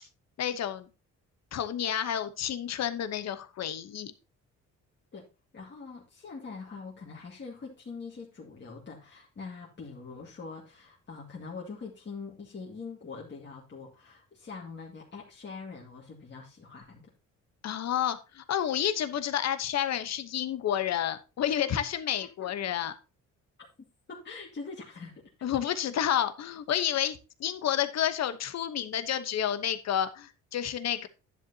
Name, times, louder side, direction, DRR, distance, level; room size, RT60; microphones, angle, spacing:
voice 1, 0.4-0.9 1.5-4.1 17.6-22.9 25.4-31.1, left 10 dB, 60° left, 11 dB, 1.0 m, -30 dB
voice 2, 5.5-17.1 22.4-22.5 24.1-25.2, left 4 dB, 35° left, -3 dB, 2.2 m, -43 dB
10.5 x 7.5 x 2.8 m, 0.30 s
cardioid pair, 90°, 30 cm